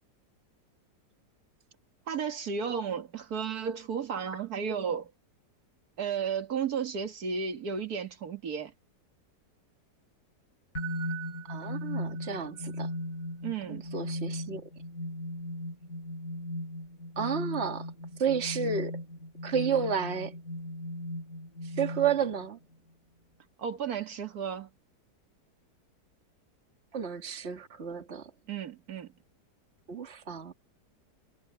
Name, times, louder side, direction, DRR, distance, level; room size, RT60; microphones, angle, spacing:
voice 1, 2.1-5.1 6.0-8.7 13.4-13.9 23.6-24.7 28.5-29.1, right 6 dB, 60° right, 2.2 m, -33 dB
sound 1, 10.7-22.5, left 1 dB, 50° left, 3.9 m, -37 dB
voice 2, 11.5-12.9 13.7-14.6 17.2-17.9 18.2-19.0 19.4-20.3 21.8-22.6 26.9-28.3 29.9-30.5, right 7 dB, 40° right, 2.2 m, -31 dB
omnidirectional pair, 1.9 m